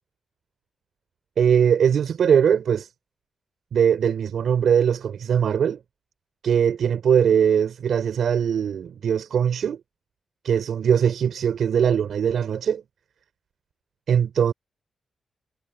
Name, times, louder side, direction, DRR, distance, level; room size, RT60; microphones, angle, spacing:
voice 1, 1.4-2.9 3.7-5.8 6.4-9.8 10.4-12.8 14.1-14.5, right 8 dB, 80° right, 6.2 m, -21 dB
cardioid pair, 80°, 0 cm